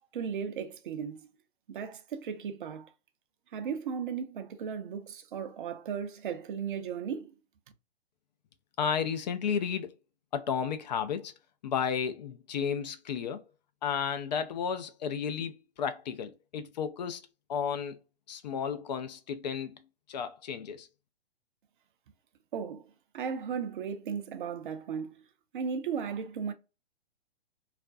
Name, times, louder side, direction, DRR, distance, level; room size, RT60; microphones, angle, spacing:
voice 1, 0.1-1.3 1.7-2.9 3.5-7.3 22.5-22.8 23.1-25.2 25.5-26.5, right 7 dB, 55° right, 0.7 m, -36 dB
voice 2, 8.8-9.9 10.3-11.3 11.6-13.4 13.8-17.2 17.5-18.0 18.3-19.7 20.1-20.9, left 7 dB, 45° left, 0.5 m, -33 dB
2.4 x 2.1 x 2.5 m
hypercardioid pair, 125°, 31 cm